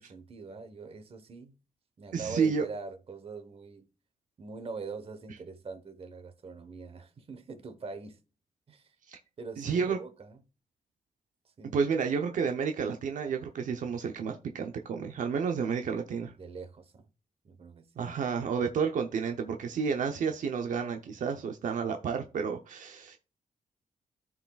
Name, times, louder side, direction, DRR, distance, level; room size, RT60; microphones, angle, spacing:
voice 1, 0.0-1.5 2.0-3.9 4.4-8.2 8.7-8.9 9.4-10.4 11.4-11.8 16.4-17.1 17.4-18.1, right 4 dB, 45° right, 1.1 m, -43 dB
voice 2, 2.1-2.7 9.1-9.2 9.6-10.0 11.7-16.3 18.0-23.2, right 6 dB, 75° right, 0.8 m, -31 dB
13.5 x 4.8 x 2.4 m
cardioid pair, 110°, 13 cm